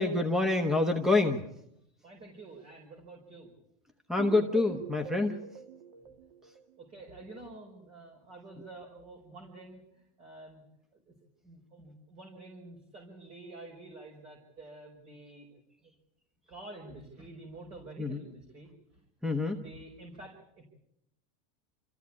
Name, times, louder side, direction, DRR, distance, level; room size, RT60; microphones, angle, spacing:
voice 1, 0.0-1.4 4.1-5.4 18.0-18.2 19.2-19.6, left 2 dB, ahead, 7 dB, 1.2 m, -27 dB
voice 2, 2.0-3.5 6.8-10.6 10.9-11.1 11.4-15.9 16.5-19.0 19.3-20.6, right 2 dB, 30° right, 1 dB, 5.0 m, -49 dB
sound 1, 4.2-7.1, right 7 dB, 70° right, 1.8 m, -44 dB
27.5 x 15.0 x 8.6 m, 0.78 s
supercardioid pair, 150°, 20 cm